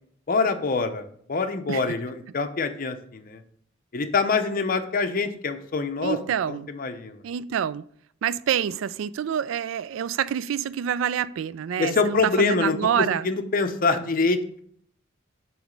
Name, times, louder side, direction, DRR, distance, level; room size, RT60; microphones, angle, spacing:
voice 1, 0.3-3.4 3.9-6.2 6.5-7.2 11.8-14.6, left 4 dB, 45° left, 0.6 m, -25 dB
voice 2, 6.0-6.7 7.2-7.8 8.2-13.3, right 8 dB, 70° right, 0.3 m, -27 dB
7.8 x 3.2 x 5.1 m
head